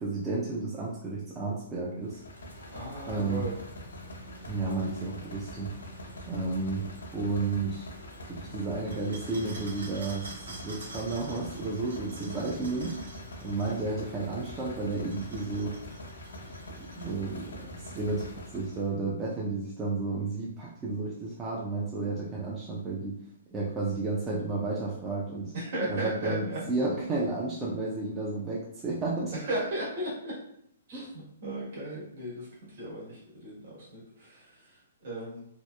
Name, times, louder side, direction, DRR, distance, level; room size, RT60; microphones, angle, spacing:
voice 1, 0.0-2.2 3.1-3.4 4.5-5.7 6.3-6.9 7.1-7.9 8.3-13.0 13.4-15.8 16.9-23.1 23.5-25.5 25.9-29.3 30.9-31.1, right 3 dB, 20° right, -5 dB, 0.4 m, -32 dB
sound 1, 2.0-18.9, left 1 dB, 85° left, 0.5 m, -44 dB
voice 2, 2.7-3.6 25.5-26.6 29.3-30.3 30.9-35.5, right 1 dB, 60° right, -6 dB, 1.2 m, -36 dB
sound 2, 8.9-13.8 14.8-17.3, right 2 dB, 85° right, 0.7 m, -48 dB
2.7 x 2.0 x 2.2 m, 0.75 s
hypercardioid pair, 135°, 0 cm